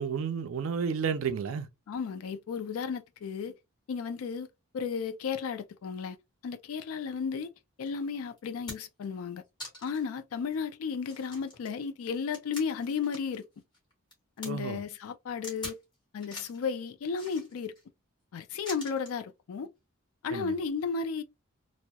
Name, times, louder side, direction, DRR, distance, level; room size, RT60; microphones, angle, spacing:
voice 1, 0.0-1.7 14.4-14.8 20.3-20.5, right 6 dB, 65° right, 0.4 m, -31 dB
voice 2, 1.9-3.5 3.9-4.5 4.7-6.2 6.4-7.5 7.8-9.4 9.8-13.4 14.4-15.8 16.1-17.7 18.3-19.7 20.2-21.2, left 5 dB, 75° left, 0.3 m, -34 dB
sound 1, 7.9-8.0 8.4-9.0 9.6-10.1 10.5-10.6 11.0-13.4 13.7-14.5 15.4-15.8 16.2-16.6 17.1-17.8 18.6-19.2 20.3-20.4, left 1 dB, 20° left, 1.0 m, -44 dB
2.8 x 2.0 x 2.2 m
head